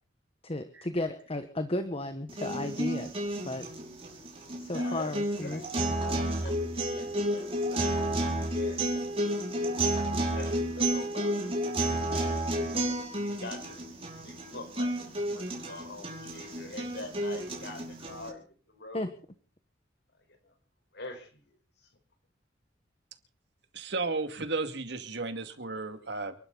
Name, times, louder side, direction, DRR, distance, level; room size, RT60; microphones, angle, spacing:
voice 1, 0.4-3.1 3.4-3.7 4.6-5.9 18.9-19.1, left 2 dB, 35° left, 9 dB, 1.3 m, -34 dB
sound 1, 2.3-18.3, right 1 dB, 35° right, 5.2 m, -31 dB
voice 2, 4.7-8.9 9.2-9.4 10.3-11.4 11.8-12.6 13.2-13.9 14.2-19.1 20.9-21.4, left 2 dB, 65° left, 6 dB, 4.5 m, -45 dB
voice 3, 23.7-26.4, right 3 dB, 65° right, 7 dB, 2.3 m, -34 dB
29.5 x 12.0 x 4.0 m, 0.40 s
head